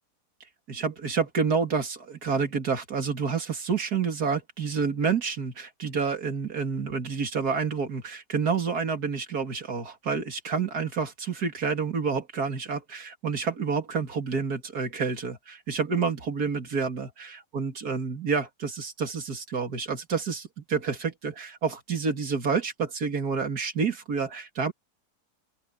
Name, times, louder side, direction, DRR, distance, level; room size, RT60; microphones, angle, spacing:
voice 1, 0.7-24.7, right 5 dB, 70° right, 2.8 m, -29 dB
open air
omnidirectional pair, 1.7 m